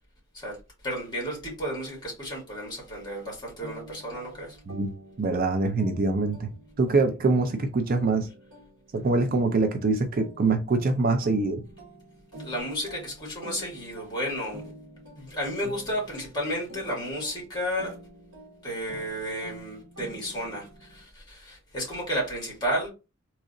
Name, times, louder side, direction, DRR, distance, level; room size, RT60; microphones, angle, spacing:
voice 1, 0.8-4.6 12.4-14.6 15.2-18.0 18.6-22.9, equal, 20° left, 2.0 m, -32 dB
sound 1, 3.6-21.0, right 1 dB, 70° right, 1.0 m, -47 dB
voice 2, 5.2-6.5 6.8-8.3 8.9-11.6, right 3 dB, 45° right, 0.4 m, -24 dB
3.7 x 3.0 x 2.6 m
head